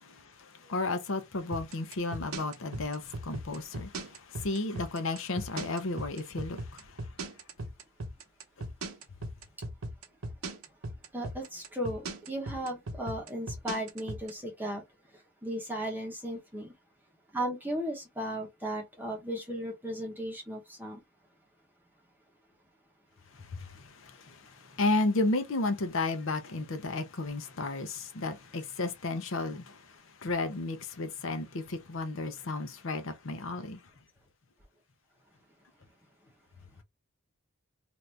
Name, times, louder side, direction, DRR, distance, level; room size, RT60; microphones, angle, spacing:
voice 1, 0.0-6.8 23.5-29.8 30.2-33.8, left 2 dB, 60° left, 0.6 m, -33 dB
sound 1, 1.5-14.3, right 2 dB, 70° right, 0.8 m, -37 dB
voice 2, 11.1-14.8 15.4-16.7 17.3-21.0, right 1 dB, 10° right, 0.9 m, -36 dB
2.9 x 2.5 x 3.2 m
head